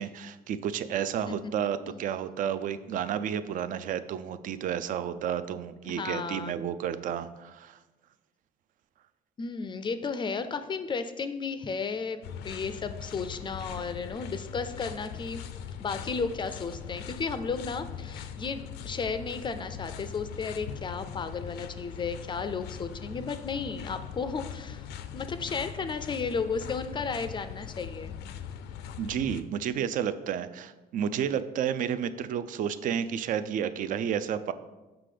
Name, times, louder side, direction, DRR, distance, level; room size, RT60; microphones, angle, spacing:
voice 1, 0.0-7.8 29.0-34.5, right 9 dB, 50° right, 13 dB, 0.4 m, -31 dB
voice 2, 5.8-6.5 9.4-15.4 15.8-24.9 25.1-28.1, left 5 dB, 30° left, 10 dB, 0.4 m, -34 dB
sound 1, 12.2-29.4, left 8 dB, 90° left, 0.4 m, -41 dB
5.8 x 3.8 x 4.9 m, 1.1 s
cardioid pair, 110°, 17 cm